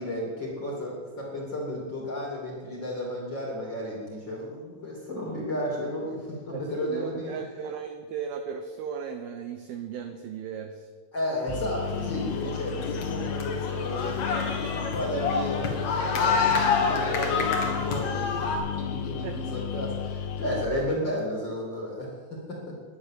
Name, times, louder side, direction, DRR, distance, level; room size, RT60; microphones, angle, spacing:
voice 1, 0.0-7.3 11.1-22.8, left 1 dB, 30° left, -3 dB, 2.4 m, -33 dB
voice 2, 6.5-10.9 19.2-19.6, right 7 dB, 85° right, 6 dB, 2.1 m, -36 dB
sound 1, 11.5-20.7, left 8 dB, 85° left, 3.2 m, -33 dB
sound 2, 11.9-18.6, left 5 dB, 55° left, 2.0 m, -28 dB
11.5 x 9.9 x 7.4 m, 1.5 s
omnidirectional pair, 5.4 m